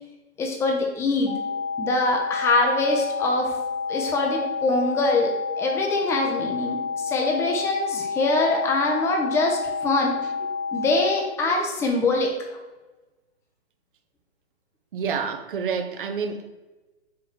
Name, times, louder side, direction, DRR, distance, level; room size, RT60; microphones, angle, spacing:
voice 1, 0.4-1.3 1.8-3.5 3.9-10.1 10.7-12.6, left 2 dB, 10° left, 1 dB, 0.7 m, -24 dB
sound 1, 1.3-11.3, left 5 dB, 60° left, 0.7 m, -29 dB
voice 2, 14.9-16.5, right 6 dB, 50° right, 6 dB, 0.9 m, -28 dB
5.9 x 5.1 x 4.3 m, 1.2 s
figure-of-eight pair, 120°, 33 cm